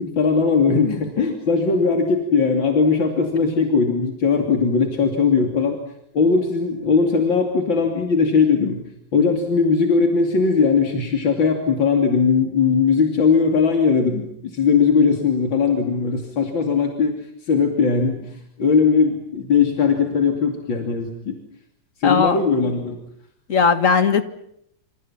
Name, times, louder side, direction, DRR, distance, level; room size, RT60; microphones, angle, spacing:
voice 1, 0.0-5.8 6.1-8.8 9.1-21.4 22.0-23.0, left 5 dB, 85° left, 4 dB, 3.6 m, -19 dB
voice 2, 22.0-22.4 23.5-24.2, left 5 dB, 45° left, 11 dB, 2.2 m, -17 dB
28.5 x 28.0 x 5.9 m, 0.72 s
omnidirectional pair, 2.0 m